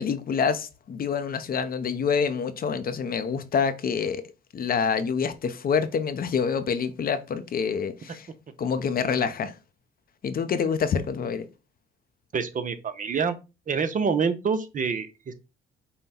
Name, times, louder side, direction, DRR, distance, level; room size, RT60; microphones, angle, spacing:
voice 1, 0.0-4.2 4.5-8.3 8.6-9.6 10.2-11.5, left 6 dB, 50° left, 0.6 m, -26 dB
voice 2, 12.3-13.4 13.7-15.3, right 5 dB, 40° right, 0.7 m, -26 dB
5.5 x 2.2 x 4.2 m
cardioid pair, 90°, 20 cm